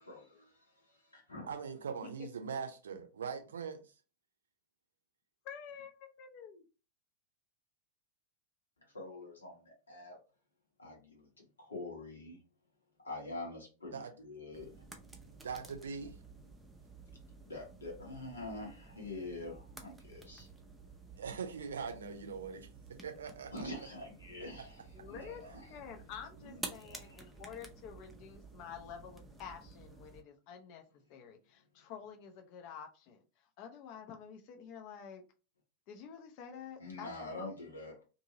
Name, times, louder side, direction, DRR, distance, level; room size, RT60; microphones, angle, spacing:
voice 1, 0.1-1.5 8.9-10.2 10.8-12.4 13.0-14.7 16.0-16.1 17.4-20.5 23.5-24.8 25.1-25.7 26.4-27.2 36.8-37.9, left 2 dB, 75° left, 1.2 m, -46 dB
voice 2, 1.5-3.9 13.9-14.1 15.4-16.2 21.2-23.9 24.5-24.6, right 6 dB, 65° right, 0.6 m, -42 dB
voice 3, 5.4-6.6 24.9-25.4 25.7-30.8 31.1-35.2 35.9-37.5, left 7 dB, 45° left, 0.6 m, -49 dB
sound 1, 14.5-30.2, right 3 dB, 10° right, 0.6 m, -52 dB
2.7 x 2.7 x 2.8 m
figure-of-eight pair, 90°, 0 cm